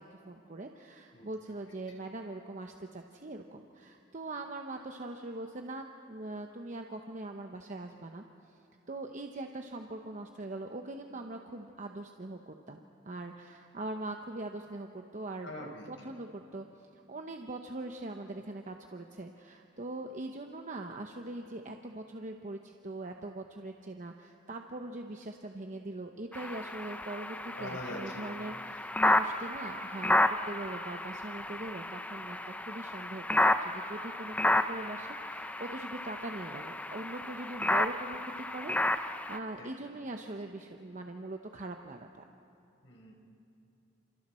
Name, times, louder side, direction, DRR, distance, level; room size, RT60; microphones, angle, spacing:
voice 1, 0.0-8.2 8.9-12.8 13.0-38.2 38.5-42.2, right 2 dB, 40° right, 4 dB, 0.9 m, -42 dB
voice 2, 15.4-15.9 27.6-28.2 34.3-34.5 39.6-39.7 42.8-43.1, left 1 dB, 85° left, -1 dB, 4.9 m, -43 dB
sound 1, 26.3-39.4, left 1 dB, 10° left, 0.6 m, -32 dB
29.5 x 27.5 x 4.4 m, 2.7 s
head